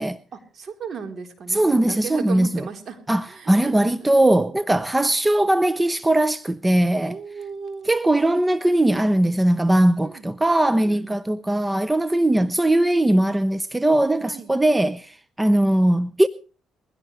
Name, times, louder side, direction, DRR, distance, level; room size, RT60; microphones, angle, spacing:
voice 1, 0.3-3.0 3.2-4.1 7.1-7.9 10.0-10.2 10.8-11.2 14.2-14.5, right 6 dB, 50° right, 3.9 m, -36 dB
voice 2, 1.5-2.7 3.1-7.2 7.9-16.3, right 1 dB, 15° right, 0.7 m, -20 dB
21.5 x 16.0 x 3.2 m
cardioid pair, 85°, 0 cm